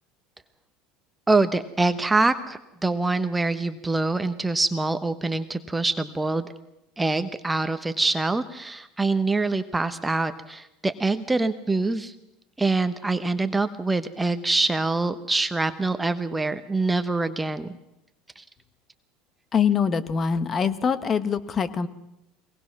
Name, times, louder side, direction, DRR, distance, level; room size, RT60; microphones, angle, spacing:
voice 1, 1.3-6.5 7.0-12.1 12.6-17.8 18.4-18.5, right 3 dB, 10° right, 10 dB, 1.1 m, -25 dB
voice 2, 19.5-21.9, left 6 dB, 35° left, 13 dB, 1.4 m, -24 dB
22.5 x 18.5 x 6.1 m, 0.87 s
supercardioid pair, 95°, 0 cm